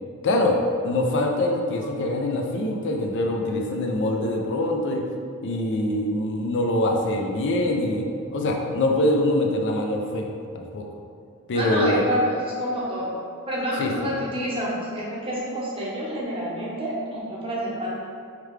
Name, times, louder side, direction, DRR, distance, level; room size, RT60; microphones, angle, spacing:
voice 1, 0.2-0.6 0.8-5.0 5.4-8.1 8.3-10.3 10.5-10.9 11.5-12.0 13.8-13.9, left 1 dB, 55° left, 1 dB, 0.5 m, -24 dB
voice 2, 11.5-13.2 13.4-18.0, equal, 25° right, -6 dB, 0.8 m, -28 dB
4.9 x 2.3 x 3.2 m, 2.3 s
head